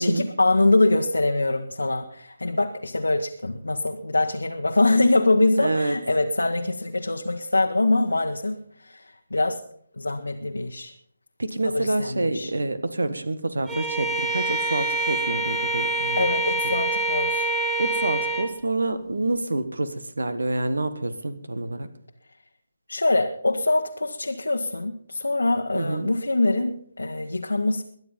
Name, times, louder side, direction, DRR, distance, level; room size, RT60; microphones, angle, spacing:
voice 1, 0.0-9.0 9.3-9.6 10.0-10.9 11.6-12.5 16.2-17.5 22.9-27.8, left 2 dB, 75° left, 3 dB, 1.3 m, -24 dB
voice 2, 5.6-6.0 11.4-16.3 17.8-21.9 25.7-26.1, right 2 dB, 70° right, 13 dB, 1.6 m, -27 dB
Bowed string instrument, 13.7-18.6, right 2 dB, 10° right, 2.2 m, -26 dB
22.0 x 9.6 x 5.5 m, 0.65 s
figure-of-eight pair, 145°, 0 cm